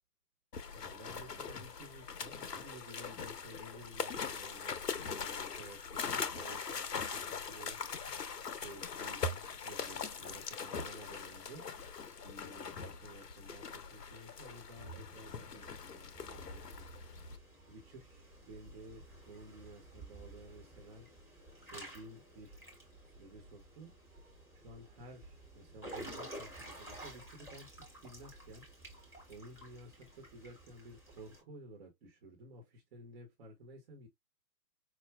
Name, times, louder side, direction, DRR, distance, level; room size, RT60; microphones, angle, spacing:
sound 1, 0.5-17.4, left 5 dB, 85° left, 0.7 m, -41 dB
voice 1, 0.7-7.8 8.6-9.3 9.6-11.6 12.2-16.9 17.3-21.1 21.6-22.6 23.0-23.9 24.5-27.7 28.0-28.6 29.3-34.1, right 1 dB, 40° right, 1.1 m, -53 dB
Water / Splash splatter / Drip, 16.1-31.4, right 1 dB, 5° right, 1.1 m, -52 dB
4.6 x 2.4 x 2.3 m
figure-of-eight pair, 125°, 47 cm